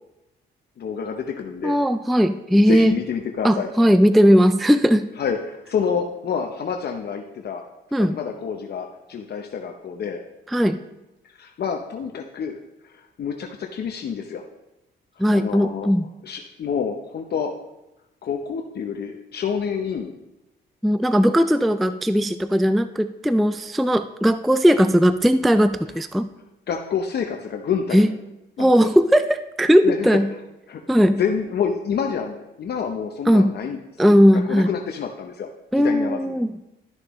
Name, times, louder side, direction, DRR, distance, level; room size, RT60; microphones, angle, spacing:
voice 1, 0.8-1.8 2.5-3.7 5.2-7.6 8.0-10.2 11.2-12.6 12.8-14.4 15.3-15.9 16.2-17.5 18.2-20.2 26.7-28.1 28.6-28.9 29.8-30.2 30.7-35.5 35.8-36.4, left 6 dB, 55° left, 3 dB, 0.8 m, -28 dB
voice 2, 1.6-3.0 3.4-5.1 7.9-8.2 10.5-10.8 15.2-16.1 20.8-26.3 27.9-28.1 28.6-30.3 30.9-31.2 33.3-33.5 34.0-34.7 35.7-36.6, equal, ahead, 12 dB, 0.3 m, -18 dB
12.5 x 6.5 x 3.1 m, 0.93 s
cardioid pair, 90°, 20 cm